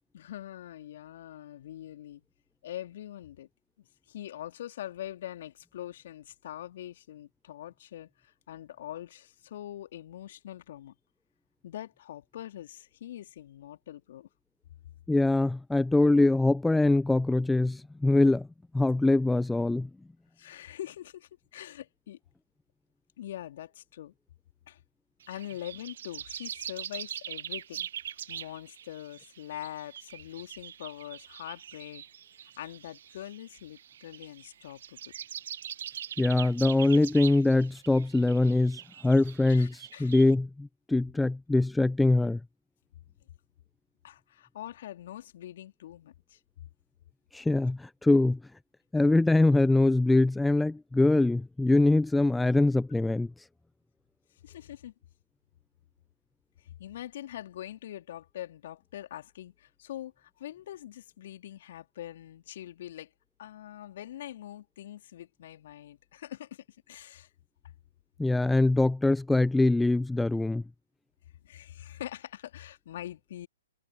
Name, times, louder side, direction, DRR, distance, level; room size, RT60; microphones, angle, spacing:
voice 1, 0.1-2.2 2.6-3.5 4.1-10.9 11.6-14.3 20.4-22.2 23.2-24.1 24.7-24.8 25.3-27.9 28.3-32.0 32.6-35.0 39.5-40.1 44.0-46.4 54.4-54.9 56.6-63.1 63.4-67.3 71.4-73.5, left 12 dB, 50° left, 2.8 m, -43 dB
voice 2, 15.1-18.5 18.7-19.9 36.2-42.4 47.3-48.4 48.9-53.3 68.2-70.6, left 2 dB, 5° left, 0.6 m, -23 dB
sound 1, 25.2-40.3, right 9 dB, 60° right, 1.5 m, -43 dB
figure-of-eight pair, 120°, 0 cm